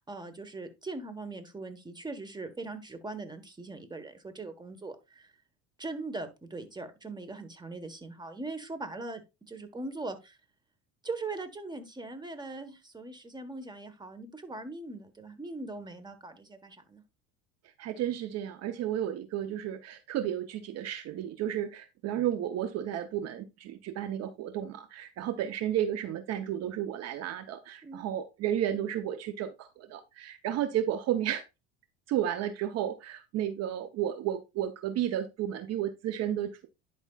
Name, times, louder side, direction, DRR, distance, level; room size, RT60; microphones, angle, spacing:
voice 1, 0.1-5.3 5.8-9.2 9.5-10.4 11.0-17.0 27.8-28.1, right 3 dB, 15° right, 1.4 m, -40 dB
voice 2, 17.8-31.4 32.1-36.7, right 11 dB, 55° right, 0.9 m, -32 dB
11.0 x 5.2 x 2.4 m
supercardioid pair, 90°, 31 cm